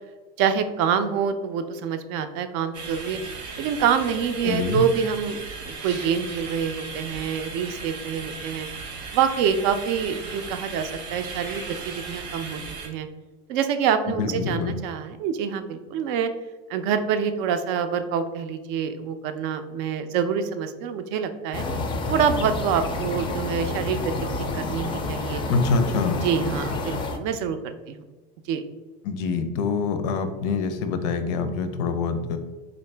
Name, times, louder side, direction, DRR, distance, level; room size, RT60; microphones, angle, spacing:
voice 1, 0.4-3.2 3.6-8.7 9.1-13.1 13.5-16.3 16.7-21.6 22.1-25.4 26.2-28.0 28.5-28.6, right 7 dB, 65° right, 9 dB, 0.4 m, -26 dB
sound 1, 2.7-12.9, right 4 dB, 85° right, 0.8 m, -37 dB
voice 2, 4.4-4.8 14.1-14.7 25.5-26.2 29.0-32.4, left 4 dB, 85° left, 8 dB, 0.5 m, -25 dB
sound 2, 21.5-27.2, left 3 dB, 25° left, 0.4 m, -29 dB
3.8 x 2.6 x 3.2 m, 1.2 s
supercardioid pair, 135°, 21 cm